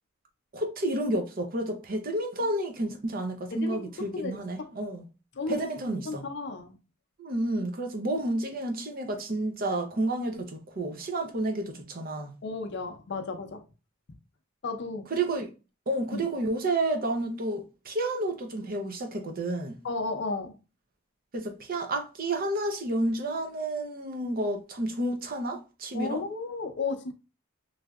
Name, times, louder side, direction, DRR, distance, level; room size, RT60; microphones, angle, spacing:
voice 1, 0.5-5.0 5.5-6.2 7.2-12.3 15.1-15.5 15.9-19.8 21.3-26.2, right 1 dB, 45° right, 0.6 m, -30 dB
voice 2, 3.5-4.7 5.4-6.7 12.4-13.6 14.6-15.1 16.1-16.2 19.8-20.6 25.9-27.1, left 3 dB, 55° left, 0.5 m, -34 dB
3.2 x 2.6 x 2.3 m
head